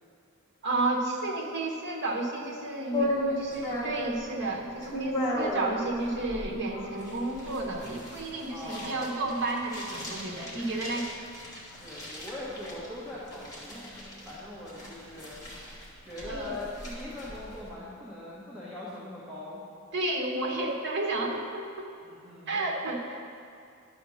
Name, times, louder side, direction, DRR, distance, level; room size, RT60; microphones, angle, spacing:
voice 1, 0.6-11.1 16.3-16.6 19.9-21.9 22.5-23.3, right 2 dB, 50° right, -1 dB, 1.2 m, -31 dB
sound 1, 2.9-17.7, left 1 dB, 15° left, 1.6 m, -36 dB
voice 2, 8.5-9.1 11.8-13.9 14.2-15.4 16.0-19.6 22.0-22.6, left 1 dB, 5° right, -10 dB, 1.2 m, -41 dB
11.0 x 4.3 x 6.3 m, 2.4 s
head